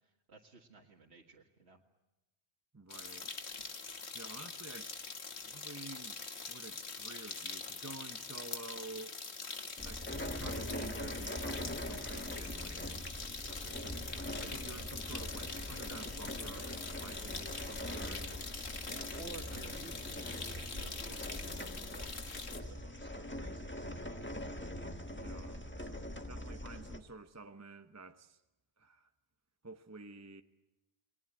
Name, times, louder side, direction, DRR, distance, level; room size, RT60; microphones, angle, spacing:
voice 1, 0.0-1.8 18.9-24.2, right 3 dB, 75° right, 2.2 m, -54 dB
voice 2, 2.7-3.3 4.1-4.9 5.4-6.2 6.5-9.2 9.8-13.1 13.5-18.3 18.8-19.2 19.5-19.6 25.1-28.4 28.8-29.1 29.6-30.4, right 3 dB, 15° right, 0.9 m, -51 dB
sound 1, 2.9-22.6, left 4 dB, 75° left, 1.9 m, -44 dB
sound 2, 9.8-27.0, left 1 dB, 10° left, 1.4 m, -43 dB
29.0 x 21.5 x 8.8 m
omnidirectional pair, 1.1 m